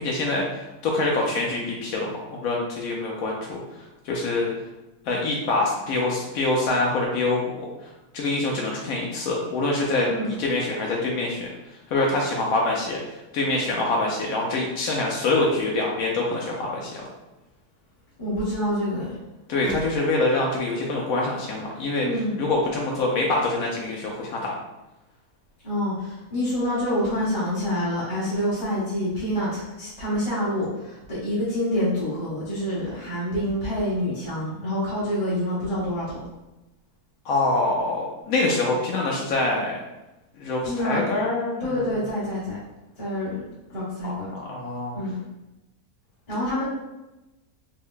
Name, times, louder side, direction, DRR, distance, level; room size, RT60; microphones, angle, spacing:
voice 1, 0.0-3.6 4.0-4.5 5.1-7.5 8.1-11.5 11.9-17.0 19.5-22.1 22.4-24.6 37.2-39.8 40.4-41.7 44.0-45.0, left 2 dB, 75° left, -2 dB, 1.0 m, -25 dB
voice 2, 18.2-19.1 19.6-19.8 22.0-22.4 25.6-36.2 40.6-41.0 41.6-42.6 43.0-43.4 43.7-44.3 44.9-45.2 46.3-46.7, left 1 dB, 25° left, -10 dB, 0.8 m, -27 dB
3.4 x 2.1 x 3.6 m, 1.0 s
omnidirectional pair, 1.6 m